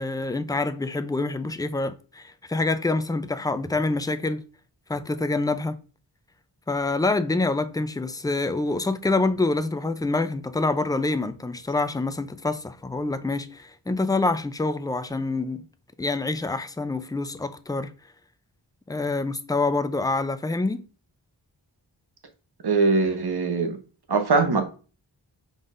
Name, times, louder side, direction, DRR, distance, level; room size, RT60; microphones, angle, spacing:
voice 1, 0.0-4.4 4.9-5.8 6.7-15.6 16.0-17.9 18.9-20.9, left 3 dB, 10° left, 0.3 m, -26 dB
voice 2, 22.6-23.8 24.1-24.6, right 4 dB, 60° right, 0.9 m, -21 dB
5.3 x 3.9 x 2.5 m
wide cardioid pair, 55°, 43 cm